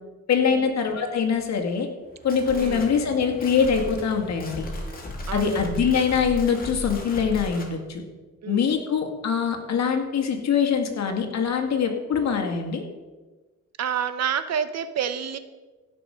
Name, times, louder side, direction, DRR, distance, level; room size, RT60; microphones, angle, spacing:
voice 1, 0.3-1.9 2.2-4.7 5.3-8.0 8.5-12.8, left 6 dB, 60° left, 4 dB, 2.1 m, -23 dB
sound 1, 2.1-7.7, left 1 dB, 30° left, 3.0 m, -36 dB
voice 2, 5.3-5.7 8.4-8.7 13.8-15.4, right 8 dB, 60° right, 12 dB, 1.0 m, -28 dB
16.5 x 6.2 x 5.1 m, 1.2 s
cardioid pair, 90°, 30 cm